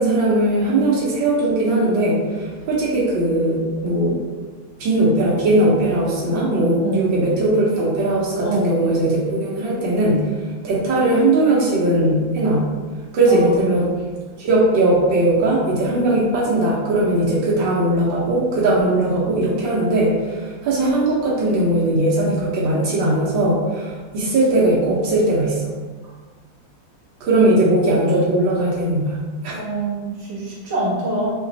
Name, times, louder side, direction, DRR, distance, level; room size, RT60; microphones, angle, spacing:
voice 1, 0.0-4.2 4.8-10.3 10.6-12.7 13.1-13.9 14.4-25.7 27.2-29.2 29.4-29.5, right 1 dB, 80° right, -6 dB, 1.6 m, -19 dB
voice 2, 8.4-8.7 13.3-13.7 29.5-31.3, right 2 dB, 40° right, -8 dB, 1.4 m, -25 dB
4.8 x 3.0 x 2.7 m, 1.4 s
omnidirectional pair, 2.0 m